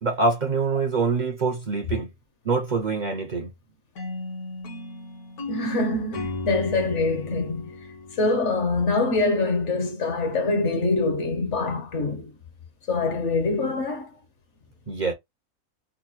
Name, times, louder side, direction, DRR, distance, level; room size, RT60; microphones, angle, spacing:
voice 1, 0.0-2.1 2.4-3.5 14.9-15.1, right 4 dB, 70° right, 0.4 m, -25 dB
sound 1, 4.0-9.1, left 3 dB, 75° left, 1.8 m, -36 dB
voice 2, 5.5-7.7 8.1-12.3 12.9-14.1, left 3 dB, 60° left, 0.9 m, -24 dB
3.8 x 2.1 x 2.9 m
omnidirectional pair, 1.6 m